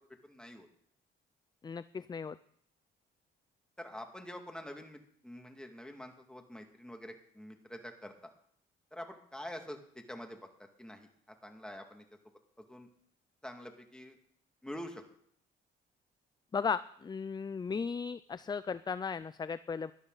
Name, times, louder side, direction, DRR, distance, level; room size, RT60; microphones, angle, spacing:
voice 1, 0.2-0.7 3.8-8.3 8.9-10.4 10.8-11.1 11.4-12.0 12.6-12.9 13.4-14.2 14.6-15.0, left 1 dB, 5° left, 4 dB, 2.2 m, -46 dB
voice 2, 1.6-2.4 16.5-19.9, left 5 dB, 20° left, 15 dB, 0.4 m, -36 dB
17.0 x 11.5 x 4.0 m, 0.66 s
cardioid pair, 90°, 20 cm